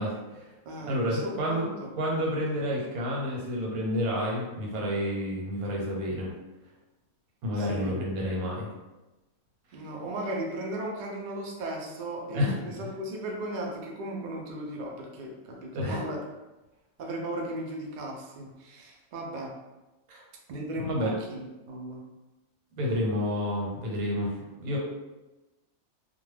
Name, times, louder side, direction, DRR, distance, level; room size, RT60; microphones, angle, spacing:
voice 1, 0.0-0.5 0.9-1.7 1.9-6.3 7.4-8.7 12.3-12.6 12.8-12.9 15.7-16.0 20.1-20.2 20.8-21.1 22.8-24.8, left 1 dB, 90° right, -2 dB, 1.3 m, -29 dB
voice 2, 0.7-1.9 7.5-7.9 9.7-16.2 17.0-19.5 20.5-22.0, right 1 dB, 70° right, -1 dB, 0.4 m, -36 dB
2.4 x 2.2 x 3.2 m, 1.1 s
omnidirectional pair, 1.5 m